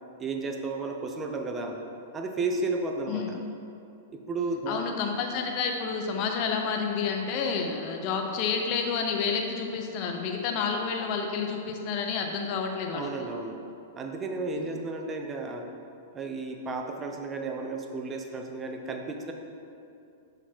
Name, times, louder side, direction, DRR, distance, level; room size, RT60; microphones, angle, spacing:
voice 1, 0.2-1.8 2.1-3.4 4.1-4.8 12.9-13.6 14.0-15.7 16.1-19.3, right 3 dB, 20° right, 3 dB, 0.6 m, -33 dB
voice 2, 4.7-13.1 14.6-14.8, left 5 dB, 45° left, 3 dB, 0.6 m, -30 dB
6.2 x 3.9 x 4.5 m, 2.5 s
hypercardioid pair, 110°, 0 cm